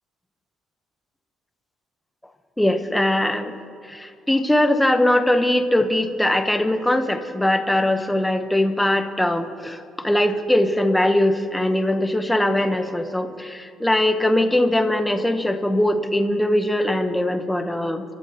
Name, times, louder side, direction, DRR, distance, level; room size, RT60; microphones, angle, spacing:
voice 1, 2.6-3.5 3.9-18.0, left 1 dB, 5° left, 6 dB, 0.9 m, -21 dB
29.0 x 12.5 x 2.9 m, 2.5 s
cardioid pair, 140°, 0 cm